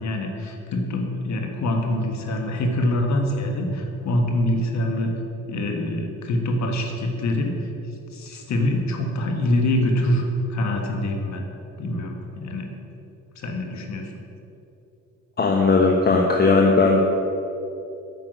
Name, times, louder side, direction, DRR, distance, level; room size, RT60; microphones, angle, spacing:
voice 1, 0.0-5.1 5.5-7.5 8.1-10.2 10.5-11.4 11.8-12.7 13.3-14.1, left 1 dB, 65° left, 3 dB, 1.6 m, -25 dB
voice 2, 15.4-17.0, left 3 dB, 35° left, 0 dB, 1.1 m, -17 dB
9.4 x 5.8 x 7.9 m, 2.8 s
cardioid pair, 90°, 30 cm